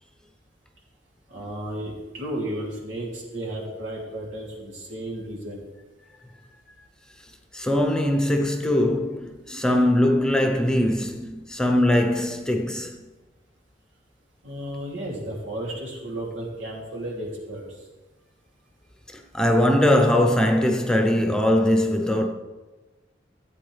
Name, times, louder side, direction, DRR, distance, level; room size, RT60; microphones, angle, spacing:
voice 1, 1.3-5.6 14.4-17.6, right 1 dB, 90° right, 3.1 m, -33 dB
voice 2, 7.5-13.0 19.3-22.3, left 1 dB, 5° left, 0.8 m, -21 dB
14.5 x 8.7 x 3.4 m
head